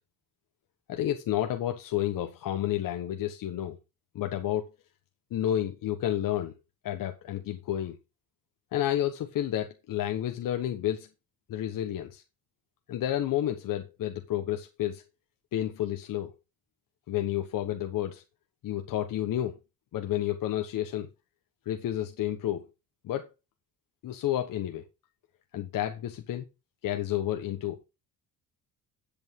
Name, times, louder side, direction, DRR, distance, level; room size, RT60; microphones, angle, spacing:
voice 1, 0.9-3.8 4.1-4.7 5.3-6.5 6.8-8.0 8.7-11.1 11.5-12.2 12.9-15.0 15.5-16.3 17.1-18.2 18.6-19.6 19.9-21.1 21.7-22.6 23.0-23.3 24.0-24.8 25.5-26.4 26.8-27.8, left 12 dB, 65° left, 1.2 m, -30 dB
10.5 x 8.2 x 3.7 m
cardioid pair, 125°, 36 cm